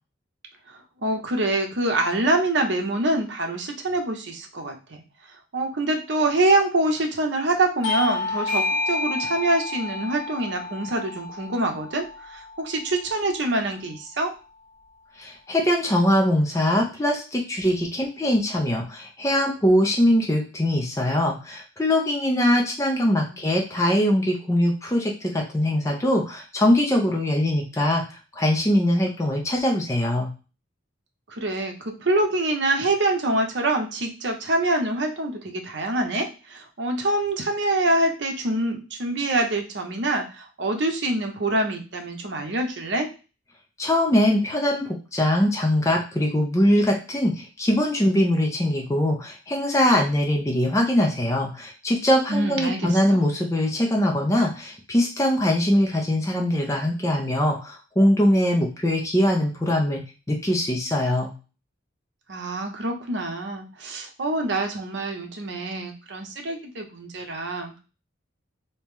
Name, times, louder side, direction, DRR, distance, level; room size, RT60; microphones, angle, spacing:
voice 1, 0.7-5.0 5.5-14.3 23.3-23.6 31.3-43.1 52.3-53.0 62.3-67.8, right 2 dB, 65° right, 4 dB, 0.7 m, -25 dB
Bell / Doorbell, 7.8-12.9, left 3 dB, 80° left, 1.0 m, -29 dB
voice 2, 15.2-30.3 43.8-60.0 60.3-61.3, left 1 dB, 15° left, 0 dB, 0.5 m, -22 dB
3.0 x 2.8 x 3.6 m, 0.33 s
head